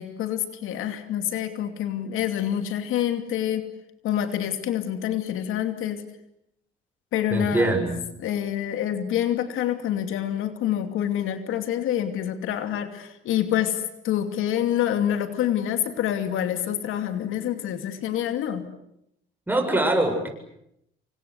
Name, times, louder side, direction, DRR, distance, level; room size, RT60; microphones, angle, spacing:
voice 1, 0.0-3.6 4.0-6.0 7.1-7.9 8.2-18.7, left 10 dB, 85° left, 8 dB, 2.7 m, -27 dB
voice 2, 7.3-8.0 19.5-20.3, right 2 dB, 10° right, 4 dB, 7.6 m, -23 dB
28.0 x 25.0 x 8.1 m, 0.79 s
cardioid pair, 95°, 20 cm